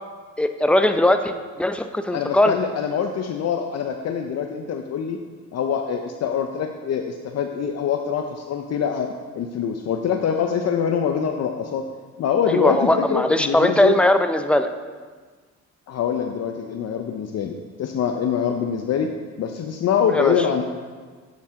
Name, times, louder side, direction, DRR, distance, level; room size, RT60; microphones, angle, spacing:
voice 1, 0.4-2.5 12.5-14.7 20.1-20.4, left 1 dB, 5° left, 8 dB, 0.4 m, -19 dB
voice 2, 2.1-5.2 5.5-11.8 12.2-14.0 15.9-19.1 19.4-20.6, left 7 dB, 60° left, 4 dB, 0.6 m, -24 dB
7.4 x 7.2 x 3.6 m, 1.5 s
cardioid pair, 90°, 30 cm